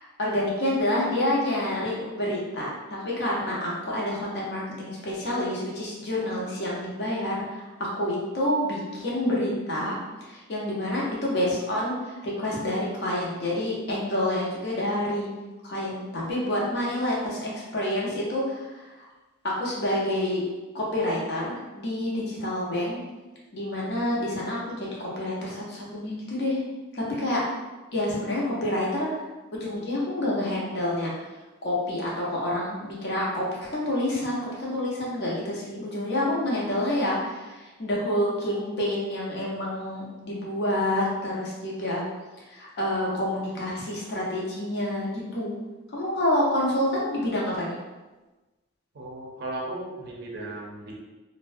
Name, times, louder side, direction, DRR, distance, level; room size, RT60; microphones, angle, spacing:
voice 1, 0.0-15.3 15.6-18.9 19.4-20.4 20.7-23.0 23.5-26.6 26.9-27.4 27.9-29.1 29.5-31.1 31.6-42.0 42.5-45.6 45.9-47.8, left 1 dB, 50° left, -4 dB, 0.6 m, -28 dB
voice 2, 48.9-50.9, right 2 dB, 50° right, -3 dB, 0.5 m, -36 dB
2.5 x 2.1 x 2.4 m, 1.2 s
head